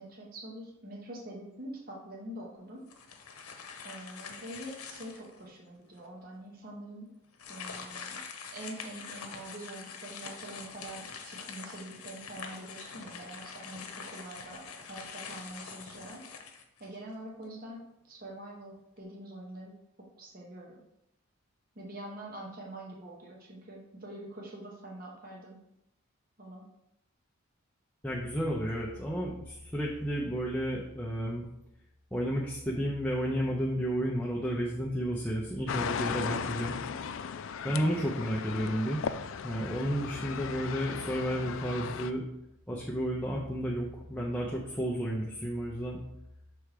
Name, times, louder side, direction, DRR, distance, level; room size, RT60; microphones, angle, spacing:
voice 1, 0.0-2.9 3.8-7.1 7.5-8.2 8.5-16.3 16.8-19.7 20.0-20.8 21.7-25.6 26.4-26.6 37.6-37.9, right 1 dB, 40° right, -2 dB, 1.0 m, -45 dB
sound 1, 2.9-5.4 6.0-6.1 7.3-17.1, left 5 dB, 85° left, 0.8 m, -45 dB
voice 2, 28.0-31.4 32.1-36.8 37.6-39.0 39.4-42.2 42.7-46.0, equal, 5° left, -4 dB, 0.6 m, -32 dB
sound 2, 35.7-42.1, left 7 dB, 60° left, 0.3 m, -37 dB
6.1 x 3.4 x 4.9 m, 0.84 s
head